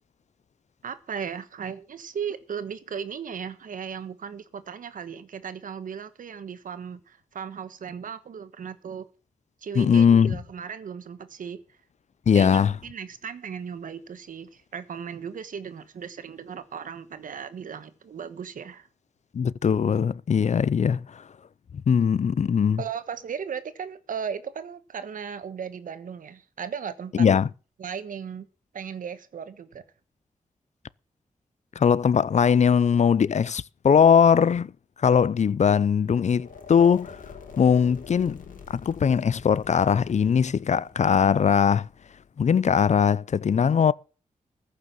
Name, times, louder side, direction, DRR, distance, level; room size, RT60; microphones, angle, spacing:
voice 1, 0.8-9.0 9.6-11.6 12.3-18.9 22.8-27.3 27.8-28.5 28.7-29.8, right 7 dB, 90° right, 1.3 m, -36 dB
voice 2, 9.8-10.4 12.3-12.7 19.3-21.2 21.9-22.8 27.1-27.5 31.8-34.7 35.0-37.2 37.6-38.4 38.7-41.9 42.4-43.9, left 7 dB, 60° left, 0.5 m, -20 dB
sound 1, 36.3-42.3, left 5 dB, 85° left, 3.2 m, -46 dB
15.0 x 6.6 x 7.5 m
cardioid pair, 75°, 13 cm